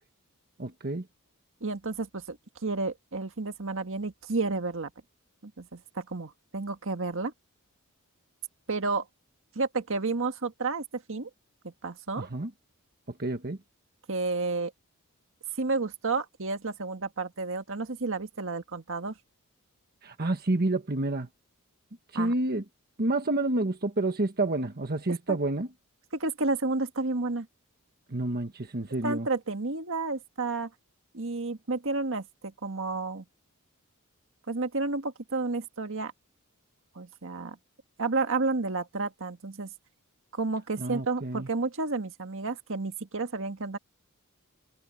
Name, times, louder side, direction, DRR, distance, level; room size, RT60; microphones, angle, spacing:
voice 1, 0.6-1.0 12.2-12.5 13.2-13.6 20.0-21.3 22.1-22.6 23.0-25.7 28.1-29.3 40.8-41.5, right 2 dB, 45° right, 1.3 m, -29 dB
voice 2, 1.6-2.4 2.6-4.9 5.4-7.3 8.7-9.0 9.5-11.3 11.8-12.3 14.1-14.7 15.6-19.1 22.1-22.3 25.3-25.4 26.1-27.5 29.0-30.7 31.1-33.2 34.5-36.1 36.9-37.6 38.0-39.7 40.3-43.8, right 3 dB, 60° right, 1.7 m, -31 dB
head